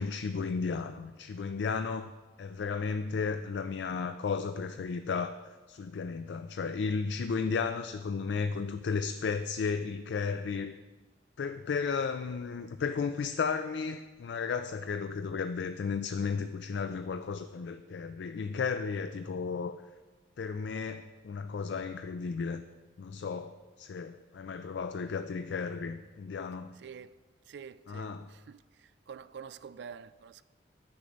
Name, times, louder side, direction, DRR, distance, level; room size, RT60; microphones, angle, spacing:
voice 1, 0.0-2.1 2.4-5.4 5.7-10.7 11.4-19.8 20.4-22.6 23.0-26.7 27.9-28.3, left 5 dB, 75° left, 0.4 m, -34 dB
voice 2, 26.8-27.1 27.5-30.4, right 6 dB, 70° right, 0.3 m, -47 dB
9.2 x 6.9 x 5.2 m
head